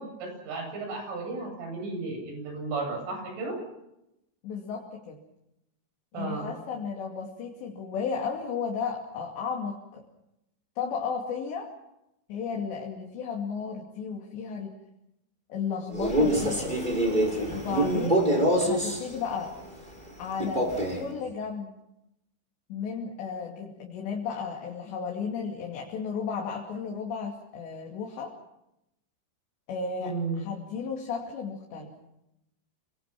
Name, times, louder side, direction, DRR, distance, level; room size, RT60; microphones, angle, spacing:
voice 1, 0.0-3.6 6.1-6.5 17.7-18.2 30.0-30.4, right 3 dB, 80° right, 2 dB, 10.5 m, -33 dB
voice 2, 4.4-5.2 6.1-10.0 10.8-11.7 12.3-14.7 15.5-16.8 17.5-18.2 18.6-19.6 20.2-21.7 22.7-28.3 29.7-31.9, left 6 dB, 65° left, 0 dB, 4.6 m, -34 dB
Male speech man speaking, 15.9-19.0 20.4-21.1, right 1 dB, 10° right, 5.8 m, -25 dB
29.5 x 23.5 x 6.1 m, 0.86 s
omnidirectional pair, 5.5 m